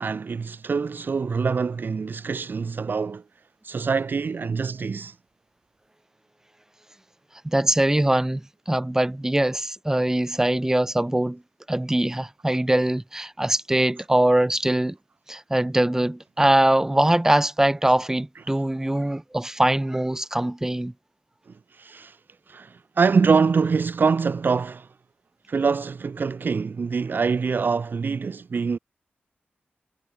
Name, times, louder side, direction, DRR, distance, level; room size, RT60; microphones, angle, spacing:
voice 1, 0.0-3.2 3.6-5.1 21.8-22.2 22.5-24.9 25.5-28.8, right 5 dB, 55° right, 0.6 m, -24 dB
voice 2, 7.4-11.4 11.7-15.0 15.3-20.9, right 1 dB, 10° right, 1.3 m, -22 dB
wide cardioid pair, 85°, 4 cm